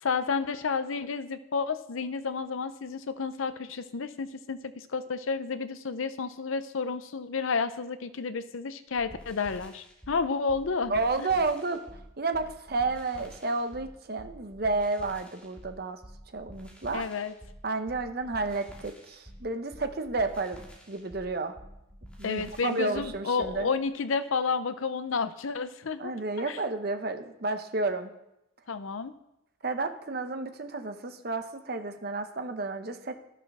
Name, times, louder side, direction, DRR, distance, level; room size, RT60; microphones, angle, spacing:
voice 1, 0.0-11.3 16.9-17.3 22.2-26.1 26.4-26.6 28.7-29.1, left 5 dB, 85° left, 12 dB, 0.6 m, -31 dB
sound 1, 8.9-23.6, equal, 5° left, 2.1 m, -49 dB
voice 2, 10.9-11.8 12.2-16.0 16.3-17.0 17.6-20.6 20.9-21.5 22.2-23.7 26.0-28.1 29.6-33.2, right 3 dB, 50° right, 8 dB, 0.8 m, -31 dB
11.0 x 6.8 x 6.0 m, 0.88 s
head